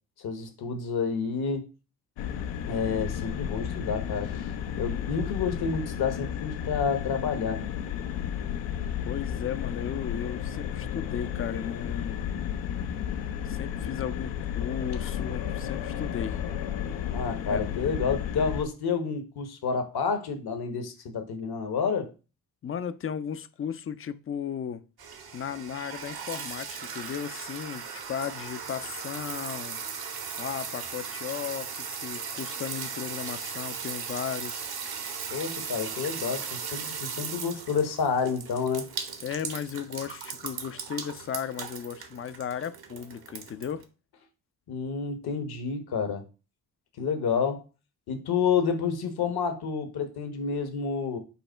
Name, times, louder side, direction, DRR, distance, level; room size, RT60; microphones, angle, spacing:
voice 1, 0.2-1.7 2.6-4.5 4.8-7.6 17.1-22.1 35.3-38.8 44.7-46.2 47.0-47.6 48.1-51.2, left 5 dB, 55° left, 1.0 m, -29 dB
sound 1, 2.2-18.6, left 9 dB, 75° left, 0.6 m, -33 dB
voice 2, 9.0-12.2 13.5-16.4 17.5-17.6 22.6-24.8 25.3-29.8 30.4-34.7 39.2-43.9, left 8 dB, 30° left, 0.4 m, -35 dB
sound 2, 25.0-43.8, right 6 dB, 55° right, 1.0 m, -37 dB
5.5 x 2.1 x 4.3 m
hypercardioid pair, 45°, 44 cm